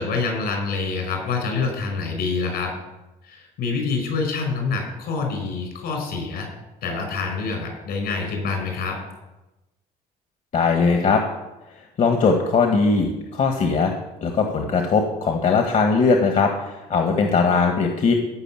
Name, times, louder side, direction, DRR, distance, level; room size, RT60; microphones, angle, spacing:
voice 1, 0.0-2.7 3.2-6.5 6.8-9.0, left 4 dB, 75° left, 2 dB, 5.4 m, -26 dB
voice 2, 10.5-11.2 12.0-13.9 14.2-18.1, left 4 dB, 50° left, 4 dB, 1.7 m, -20 dB
14.5 x 5.4 x 9.1 m, 1.0 s
cardioid pair, 95°, 16 cm